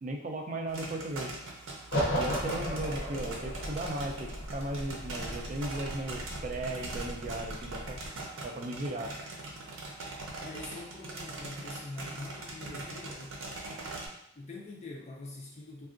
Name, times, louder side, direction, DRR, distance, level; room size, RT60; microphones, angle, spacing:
voice 1, 0.0-1.3 2.1-8.0 8.4-9.1, right 1 dB, 40° right, 2 dB, 0.3 m, -36 dB
sound 1, 0.7-14.1, right 2 dB, 75° right, 0.6 m, -42 dB
sound 2, 1.9-8.1, equal, 65° left, 0.7 m, -36 dB
voice 2, 2.1-2.4 10.4-13.4 14.4-15.9, left 2 dB, 35° left, -1 dB, 0.4 m, -44 dB
3.5 x 2.3 x 2.4 m, 0.76 s
head